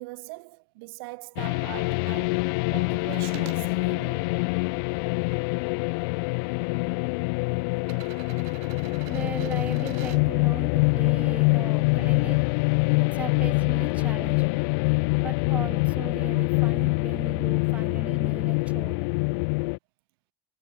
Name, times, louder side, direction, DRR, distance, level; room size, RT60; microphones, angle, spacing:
voice 1, 0.0-2.4 2.7-4.3, right 26 dB, 85° right, 1.1 m, -41 dB
sound 1, 1.4-19.8, left 33 dB, 75° left, 0.6 m, -25 dB
sound 2, 3.0-3.6 4.3-5.4 6.4-6.5 7.8-10.2 12.1-12.2, right 27 dB, 60° right, 3.4 m, -47 dB
voice 2, 9.0-12.4 13.0-14.6 15.2-19.1, right 5 dB, 10° right, 0.4 m, -38 dB
cardioid pair, 160°, 12 cm